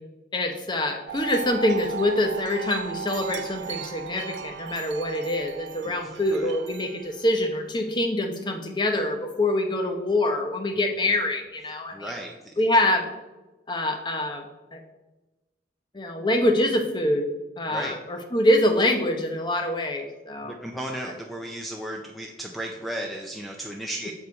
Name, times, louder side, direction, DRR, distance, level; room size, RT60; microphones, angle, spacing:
voice 1, 0.3-12.1 12.6-13.1 13.7-14.4 14.7-14.8 15.9-17.2 17.6-20.5, left 1 dB, 25° left, 4 dB, 0.8 m, -25 dB
Wind chime, 1.1-7.6, right 7 dB, 90° right, 0.5 m, -37 dB
voice 2, 5.8-6.5 10.7-10.8 11.1-11.2 11.9-12.6 17.7-18.0 20.4-24.1, right 1 dB, ahead, 1 dB, 0.5 m, -35 dB
7.0 x 4.8 x 4.6 m, 1.1 s
head